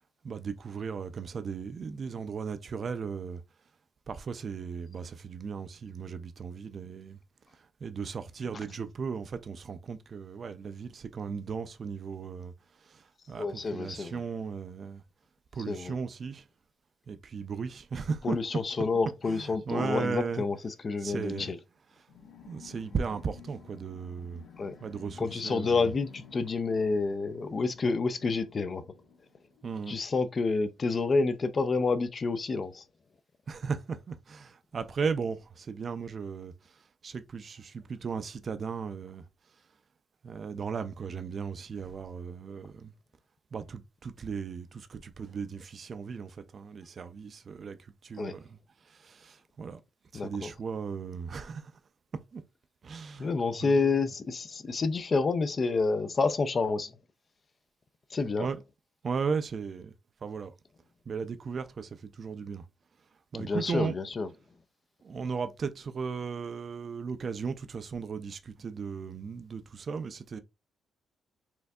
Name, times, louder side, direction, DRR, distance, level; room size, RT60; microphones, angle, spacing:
voice 1, 0.2-3.4 4.1-7.2 7.8-12.5 12.8-15.0 15.5-16.4 17.1-18.5 19.2-20.5 21.0-21.5 21.9-22.1 22.5-24.4 24.8-25.9 29.6-30.0 33.5-39.2 40.2-42.9 43.5-48.6 48.8-49.8 50.1-51.7 52.3-52.4 52.8-53.8 58.4-58.6 59.0-59.9 60.2-60.5 61.1-62.6 63.3-64.0 65.0-70.4, right 5 dB, 45° right, 0.4 m, -36 dB
voice 2, 13.4-14.2 15.7-15.9 18.2-21.6 24.6-24.8 25.2-28.8 29.9-32.8 48.2-48.4 50.1-50.5 53.2-56.9 58.1-58.5 63.4-64.3, left 4 dB, 40° left, 0.4 m, -29 dB
sound 1, 22.1-30.2, left 5 dB, 75° left, 1.0 m, -54 dB
4.4 x 2.6 x 2.3 m
cardioid pair, 90°, 0 cm